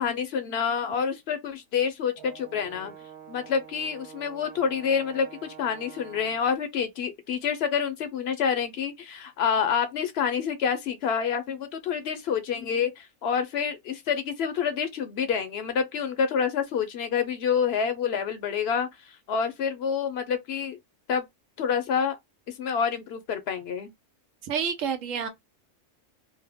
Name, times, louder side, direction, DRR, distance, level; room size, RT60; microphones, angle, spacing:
voice 1, 0.0-3.0 3.3-20.8 21.1-21.3 21.6-22.2 22.5-23.9, left 7 dB, 65° left, 0.7 m, -28 dB
Brass instrument, 2.2-6.6, right 9 dB, 60° right, 1.0 m, -47 dB
voice 2, 24.4-25.3, right 7 dB, 85° right, 1.1 m, -29 dB
2.7 x 2.1 x 3.4 m
omnidirectional pair, 1.3 m